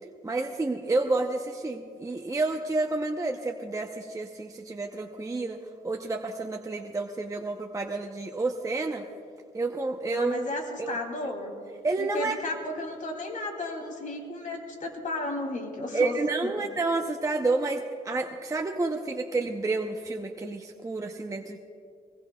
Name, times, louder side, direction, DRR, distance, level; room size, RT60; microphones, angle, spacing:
voice 1, 0.2-5.6 5.8-9.0 9.5-10.5 10.8-11.0 11.2-11.3 11.8-12.4 15.9-21.6, right 3 dB, 20° right, 2 dB, 0.8 m, -29 dB
voice 2, 10.1-11.5 12.0-16.5, left 2 dB, 60° left, 2 dB, 2.8 m, -34 dB
22.5 x 20.5 x 2.3 m, 2.4 s
cardioid pair, 95°, 15 cm